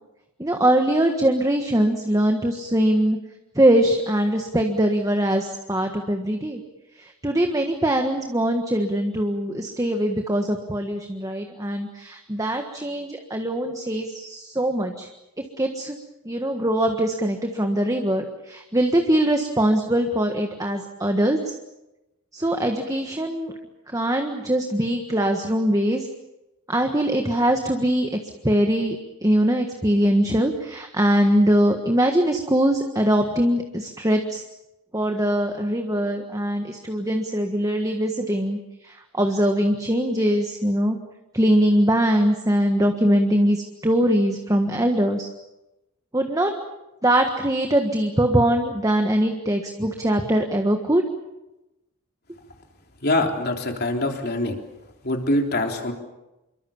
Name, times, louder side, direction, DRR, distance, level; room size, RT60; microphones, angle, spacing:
voice 1, 0.4-3.2 3.5-6.6 7.0-15.1 15.6-15.9 16.2-21.5 22.3-23.5 23.9-26.1 26.7-28.1 28.4-34.4 34.9-38.6 38.8-41.0 41.3-45.3 46.1-46.5 47.0-51.0, right 1 dB, 15° right, 4 dB, 1.5 m, -22 dB
voice 2, 53.0-54.6 55.0-55.9, left 1 dB, 45° left, 3 dB, 3.5 m, -24 dB
27.0 x 23.5 x 7.2 m, 0.97 s
head